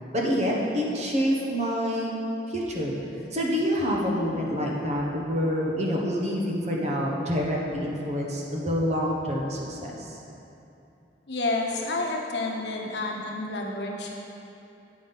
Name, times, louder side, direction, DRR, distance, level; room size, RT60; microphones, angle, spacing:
voice 1, 0.1-2.1 2.5-2.9 3.3-10.1, equal, 40° right, -3 dB, 1.2 m, -27 dB
voice 2, 11.3-14.1, left 2 dB, 70° left, -1 dB, 1.1 m, -29 dB
8.6 x 5.4 x 5.6 m, 2.8 s
head